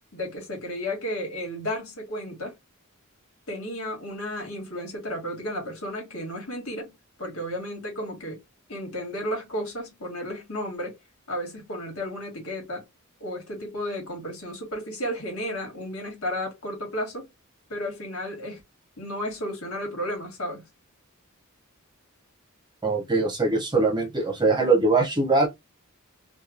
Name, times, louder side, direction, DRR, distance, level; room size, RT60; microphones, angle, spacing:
voice 1, 0.1-2.5 3.5-8.4 8.7-11.0 11.3-12.8 13.2-17.3 17.7-18.6 19.0-20.6, equal, 70° left, 1.5 m, -33 dB
voice 2, 22.8-25.5, right 3 dB, 20° right, 0.7 m, -22 dB
2.9 x 2.3 x 2.4 m
head